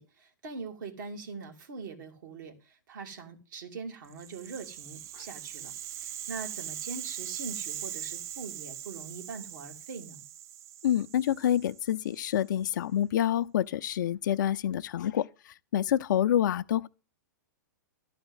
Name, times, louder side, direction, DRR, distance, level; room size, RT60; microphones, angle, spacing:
voice 1, 0.0-5.7 6.0-10.2, right 4 dB, 65° right, 2.6 m, -42 dB
Rattle (instrument), 4.1-12.3, right 11 dB, 25° right, 0.4 m, -41 dB
voice 2, 10.8-15.3 15.7-16.9, left 11 dB, 65° left, 0.6 m, -27 dB
12.0 x 4.3 x 8.1 m
hypercardioid pair, 120°, 11 cm